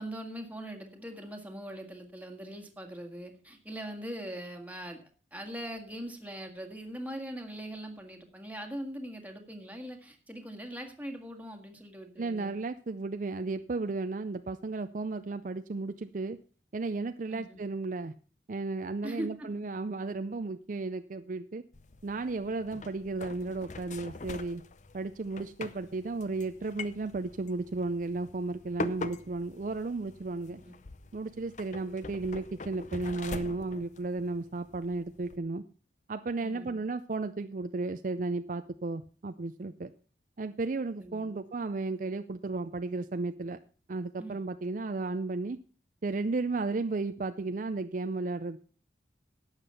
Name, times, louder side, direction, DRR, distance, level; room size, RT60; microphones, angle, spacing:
voice 1, 0.0-5.0 5.3-12.6 17.3-17.6 19.0-19.5 25.9-26.0 30.5-30.7 36.4-36.9 41.0-41.3 44.2-44.4, right 1 dB, 10° right, 3 dB, 1.7 m, -41 dB
voice 2, 12.2-16.4 16.7-18.1 18.5-21.6 22.0-24.6 24.9-30.6 31.1-35.6 36.1-39.9 40.4-43.6 43.9-45.6 46.0-48.6, right 3 dB, 45° right, 10 dB, 0.5 m, -34 dB
sound 1, 21.7-35.4, left 3 dB, 40° left, 0.7 m, -44 dB
12.0 x 8.2 x 5.6 m, 0.39 s
head